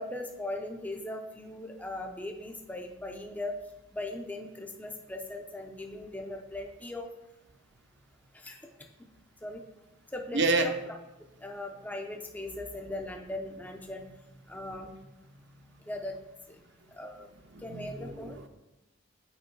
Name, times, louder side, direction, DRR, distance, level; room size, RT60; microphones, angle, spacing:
voice 1, 0.0-3.6 3.9-7.1 8.3-8.9 9.4-9.6 10.1-10.7 11.4-14.1 14.5-14.9 15.9-16.2 16.5-16.6 16.9-17.3 17.6-18.4, left 1 dB, 10° left, 2 dB, 0.5 m, -39 dB
voice 2, 10.3-10.7 17.5-18.5, right 3 dB, 55° right, 7 dB, 0.6 m, -29 dB
7.9 x 4.6 x 4.5 m, 0.96 s
head